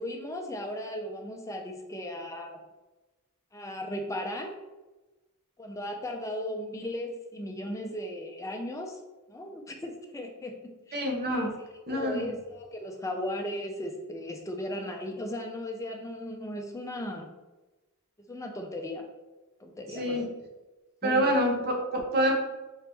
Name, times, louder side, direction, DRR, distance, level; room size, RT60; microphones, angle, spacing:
voice 1, 0.0-2.6 3.5-4.5 5.6-9.0 9.3-10.5 10.9-11.0 11.4-11.5 11.9-17.3 18.3-19.0 19.6-20.2 21.0-21.3, left 1 dB, 15° left, 2 dB, 0.5 m, -36 dB
voice 2, 10.9-11.5 11.9-12.4 19.9-20.3 21.0-22.3, equal, 45° right, 1 dB, 0.8 m, -27 dB
3.9 x 3.0 x 3.4 m, 1.1 s
head